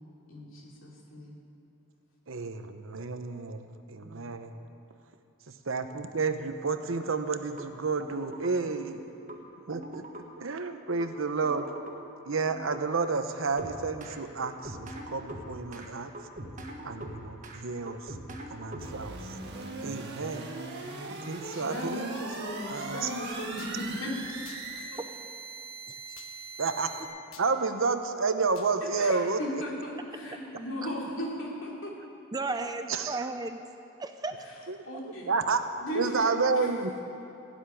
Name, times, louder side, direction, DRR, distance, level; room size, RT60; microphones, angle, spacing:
voice 1, 0.3-1.4 4.0-4.3 9.1-9.2 21.5-25.0 28.9-31.9 34.4-34.6 34.8-35.3 35.8-36.7, equal, 65° left, -3 dB, 3.1 m, -37 dB
voice 2, 2.3-4.5 5.7-9.0 9.7-11.6 12.2-16.1 16.8-18.2 18.5-19.4 19.8-20.5 21.3-22.1 22.7-23.1 26.6-27.1 27.4-29.4 32.9-33.3 34.7-34.8 35.0-35.6 35.9-37.0, right 4 dB, 70° right, 8 dB, 0.8 m, -31 dB
sound 1, 7.6-7.7 8.0-8.5 9.3-9.4 9.7-10.2 11.0-11.1 11.4-11.9 12.5-12.8 13.6-14.2 14.4-15.9 16.1-17.6 17.9-19.2, right 1 dB, 35° right, 1.5 m, -42 dB
sound 2, 18.8-27.0, right 3 dB, 55° right, 1.7 m, -40 dB
sound 3, 23.6-23.8 24.4-24.6 26.1-26.3 27.3-27.5 28.5-28.7, left 7 dB, 80° left, 1.3 m, -49 dB
voice 3, 32.3-33.6 34.0-34.4, right 3 dB, 20° right, 7 dB, 0.5 m, -34 dB
16.0 x 7.3 x 9.9 m, 2.7 s
head